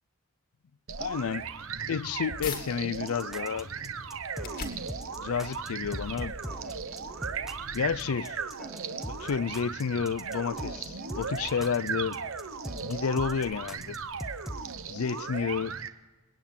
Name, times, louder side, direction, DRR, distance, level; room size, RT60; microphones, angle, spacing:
sound 1, 0.9-15.9, right 6 dB, 65° right, 1.0 m, -37 dB
voice 1, 1.0-1.5 1.9-3.7 5.2-6.3 7.7-8.4 9.1-12.2 12.8-14.0 14.9-15.7, left 6 dB, 80° left, 0.5 m, -30 dB
sound 2, 1.6-2.6 3.2-8.4, left 4 dB, 40° left, 2.1 m, -44 dB
sound 3, 2.9-14.7, equal, ahead, 0.8 m, -42 dB
28.5 x 9.5 x 5.4 m
head